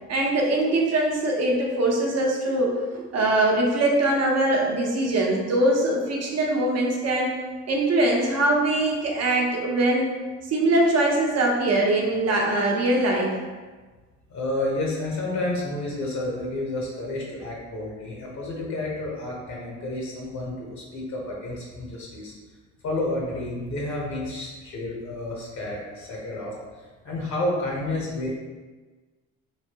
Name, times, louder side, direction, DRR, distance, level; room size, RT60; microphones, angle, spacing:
voice 1, 0.1-7.3 7.7-10.2 10.5-13.4, right 1 dB, 55° right, -1 dB, 0.8 m, -22 dB
voice 2, 14.3-22.3 22.8-26.5 27.0-28.3, left 1 dB, 70° left, -3 dB, 0.9 m, -30 dB
3.2 x 2.6 x 2.9 m, 1.3 s
cardioid pair, 90°, 30 cm